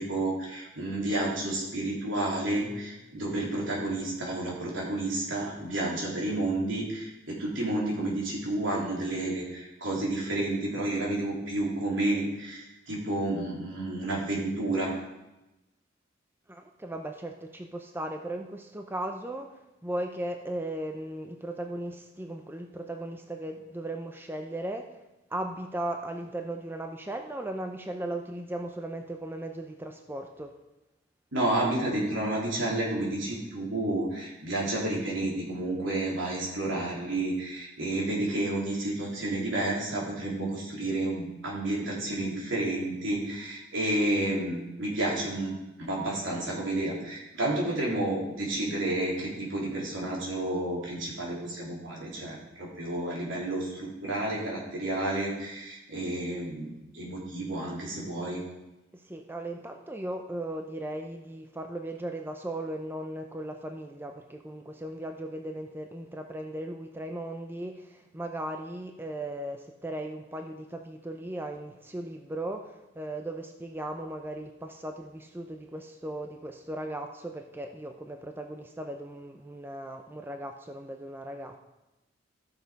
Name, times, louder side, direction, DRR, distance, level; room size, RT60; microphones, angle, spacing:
voice 1, 0.0-14.9 31.3-58.4, right 1 dB, 70° right, -4 dB, 3.7 m, -30 dB
voice 2, 16.5-24.9 25.3-30.5 58.9-81.6, right 1 dB, 10° right, 4 dB, 0.6 m, -37 dB
14.0 x 6.7 x 5.2 m, 0.99 s
head